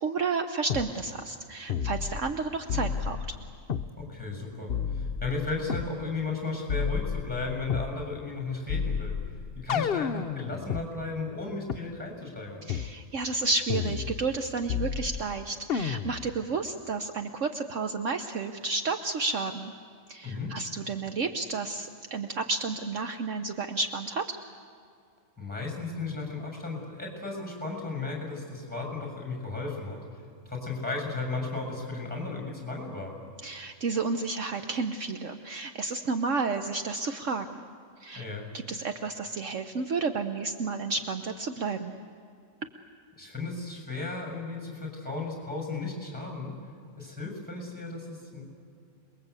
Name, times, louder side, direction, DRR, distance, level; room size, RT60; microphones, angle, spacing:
voice 1, 0.0-3.4 12.7-19.7 20.1-24.4 33.4-37.6 38.0-38.2 38.7-41.9, right 4 dB, 60° right, 7 dB, 1.2 m, -31 dB
sound 1, 0.7-0.9 1.7-2.4 2.7-3.9 4.7-5.9 6.7-7.9 8.7-10.8 11.7-11.8 12.7-12.9 13.7-14.4 14.7-15.3 15.7-16.3, left 7 dB, 50° left, 0.9 m, -31 dB
voice 2, 3.9-9.2 9.6-12.7 20.2-20.5 25.4-30.0 30.5-33.1 38.2-38.5 43.2-46.6 47.0-48.4, left 3 dB, 5° left, 1 dB, 7.0 m, -35 dB
28.0 x 21.5 x 8.3 m, 2.3 s
omnidirectional pair, 1.5 m